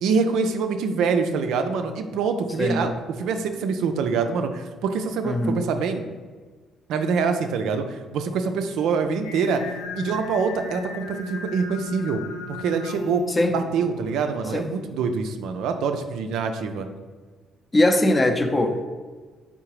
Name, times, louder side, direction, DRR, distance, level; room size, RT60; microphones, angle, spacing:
voice 1, 0.0-2.9 3.2-6.0 6.9-9.6 10.0-12.2 12.5-13.2 13.5-16.9, right 5 dB, 70° right, 7 dB, 0.3 m, -25 dB
voice 2, 2.6-2.9 5.2-5.6 13.3-13.6 14.5-14.7 17.7-18.8, left 1 dB, 25° left, 6 dB, 0.5 m, -21 dB
Singing, 9.2-14.4, left 2 dB, 85° left, 0.5 m, -36 dB
3.7 x 3.7 x 2.9 m, 1.4 s
hypercardioid pair, 50°, 0 cm